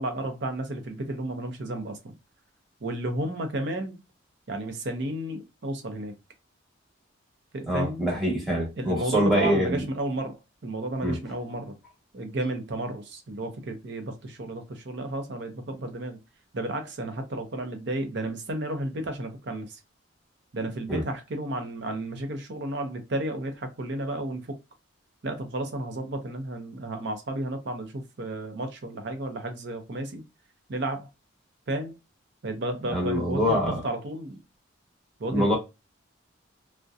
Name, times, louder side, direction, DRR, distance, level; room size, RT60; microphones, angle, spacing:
voice 1, 0.0-2.1 2.8-4.0 4.5-6.1 7.5-8.0 8.8-11.8 12.1-16.2 16.5-19.8 20.5-24.6 25.2-30.2 30.7-31.1 31.7-31.9 32.4-34.4 35.2-35.5, right 1 dB, 60° right, 0.6 m, -32 dB
voice 2, 7.7-9.8 11.0-11.2 20.9-21.0 32.9-33.8 35.3-35.5, equal, ahead, 0.9 m, -25 dB
2.6 x 2.1 x 2.3 m
head